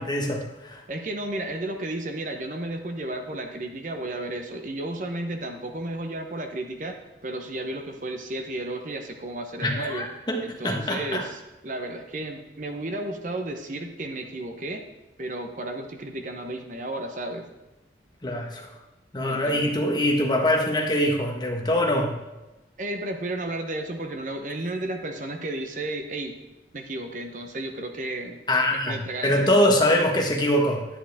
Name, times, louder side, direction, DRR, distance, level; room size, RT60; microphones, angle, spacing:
voice 1, 0.0-0.8 9.6-11.2 18.2-18.7 19.1-22.2 28.5-30.9, left 1 dB, 25° left, 1 dB, 1.4 m, -23 dB
voice 2, 0.9-7.0 7.2-10.1 10.4-14.8 15.2-17.5 19.3-19.7 22.8-26.3 26.7-28.4 28.9-29.7, right 1 dB, 45° right, 4 dB, 0.9 m, -33 dB
11.0 x 10.0 x 3.5 m, 1.0 s
head